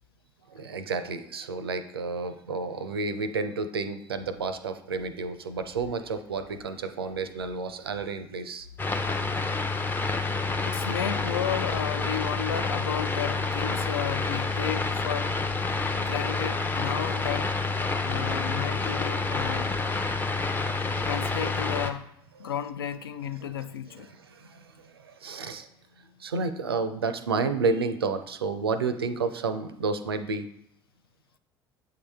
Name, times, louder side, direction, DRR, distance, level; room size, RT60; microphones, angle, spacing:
voice 1, 0.5-8.7 15.9-16.1 20.3-20.4 21.0-21.1 22.4-22.5 23.4-23.5 24.0-25.7 26.0-30.5, right 4 dB, 80° right, 0.4 m, -31 dB
sound 1, 8.8-21.9, left 3 dB, 15° left, 0.5 m, -28 dB
voice 2, 10.7-15.3 16.0-17.6 18.0-19.8 21.0-22.1 22.4-24.1, left 9 dB, 75° left, 0.4 m, -33 dB
7.7 x 3.7 x 3.4 m
figure-of-eight pair, 60°, 13 cm